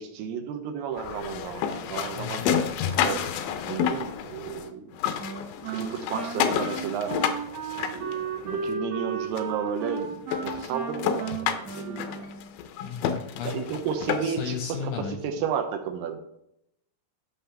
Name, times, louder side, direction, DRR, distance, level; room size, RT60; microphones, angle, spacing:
voice 1, 0.0-2.5 3.0-3.2 3.7-4.9 5.7-7.1 7.9-11.3 11.7-12.3 13.4-16.2, right 7 dB, 75° right, 7 dB, 2.2 m, -32 dB
sound 1, 1.0-4.7 4.9-8.7 9.4-9.5 9.9-10.0 10.3-14.5, left 8 dB, 90° left, 2.9 m, -30 dB
voice 2, 2.2-2.7 12.8-13.9 14.2-15.2, left 7 dB, 75° left, 4 dB, 2.0 m, -35 dB
Wind instrument woodwind instrument, 5.2-12.6, right 5 dB, 60° right, 1.9 m, -34 dB
11.5 x 6.2 x 3.4 m, 0.78 s
omnidirectional pair, 4.7 m